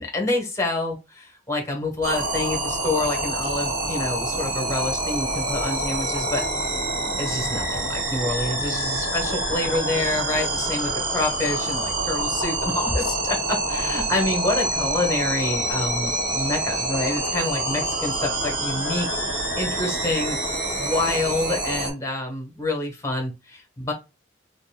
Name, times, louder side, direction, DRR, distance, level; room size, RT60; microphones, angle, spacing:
voice 1, 0.0-6.4 7.2-19.1 19.6-23.9, left 2 dB, 15° left, 1 dB, 1.3 m, -27 dB
sound 1, 2.0-21.9, right 1 dB, 45° right, 1.7 m, -26 dB
4.1 x 3.3 x 2.2 m, 0.27 s
head